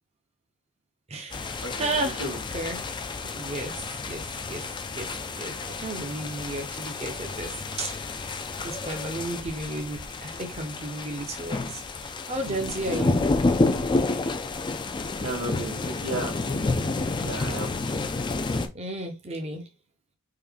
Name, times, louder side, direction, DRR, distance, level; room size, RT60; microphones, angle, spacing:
voice 1, 1.1-2.9 3.3-4.7 4.9-5.1 5.4-8.0 8.6-13.2 18.7-19.7, right 2 dB, 30° right, 0.6 m, -33 dB
sound 1, 1.3-18.7, left 3 dB, 20° left, 0.3 m, -30 dB
voice 2, 1.6-2.4 8.9-9.0 12.9-13.1 15.2-16.7 17.2-17.7, right 1 dB, 90° right, 1.5 m, -34 dB
3.7 x 2.6 x 3.4 m
head